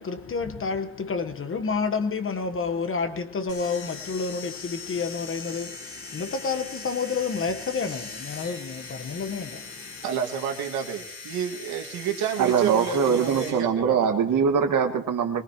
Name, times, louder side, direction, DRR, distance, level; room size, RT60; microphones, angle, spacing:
voice 1, 0.0-10.0, left 5 dB, 35° left, 1.2 m, -29 dB
sound 1, 3.5-13.5, left 4 dB, 85° left, 8.0 m, -40 dB
voice 2, 10.0-13.9, right 8 dB, 85° right, 2.0 m, -30 dB
voice 3, 12.4-15.4, right 6 dB, 60° right, 1.9 m, -22 dB
23.0 x 19.5 x 3.0 m
cardioid pair, 90°, 36 cm